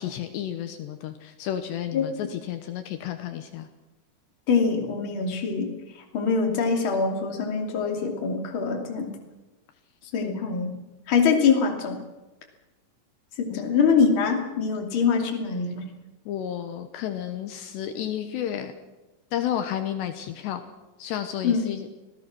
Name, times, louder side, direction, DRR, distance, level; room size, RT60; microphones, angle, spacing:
voice 1, 0.0-3.7 10.2-10.4 13.5-13.6 16.3-18.7 19.3-20.6 21.0-21.9, left 10 dB, 75° left, 7 dB, 3.1 m, -32 dB
voice 2, 4.5-5.7 6.1-9.1 10.1-10.7 11.1-12.0 13.4-15.9 21.4-21.6, left 5 dB, 35° left, 2 dB, 2.8 m, -24 dB
26.0 x 17.5 x 6.2 m, 1.1 s
omnidirectional pair, 5.4 m